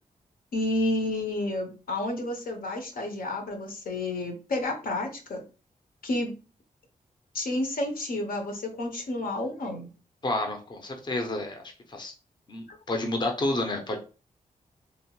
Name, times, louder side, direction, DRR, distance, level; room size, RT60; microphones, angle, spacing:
voice 1, 0.5-5.4 6.0-6.3 7.3-9.9 12.7-12.8, left 1 dB, 75° left, 3 dB, 0.8 m, -30 dB
voice 2, 10.2-12.1 12.5-14.0, left 2 dB, 30° left, 3 dB, 0.6 m, -30 dB
2.8 x 2.0 x 2.9 m, 0.33 s
wide cardioid pair, 105°, 15 cm